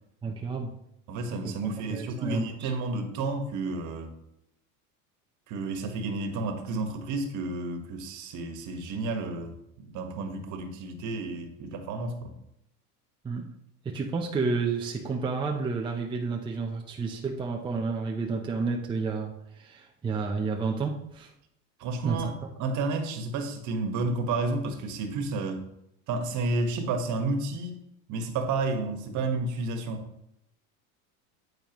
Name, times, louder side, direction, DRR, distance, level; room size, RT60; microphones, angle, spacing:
voice 1, 0.2-0.8 1.4-2.7 13.2-13.5 13.8-21.3 22.0-22.3, right 4 dB, 10° right, 1 dB, 0.7 m, -31 dB
voice 2, 1.1-4.1 5.5-12.3 21.8-22.3 22.6-25.7 26.1-27.8 28.1-30.1, right 3 dB, 45° right, 6 dB, 1.6 m, -31 dB
8.9 x 8.9 x 3.1 m, 0.80 s
supercardioid pair, 135°, 42 cm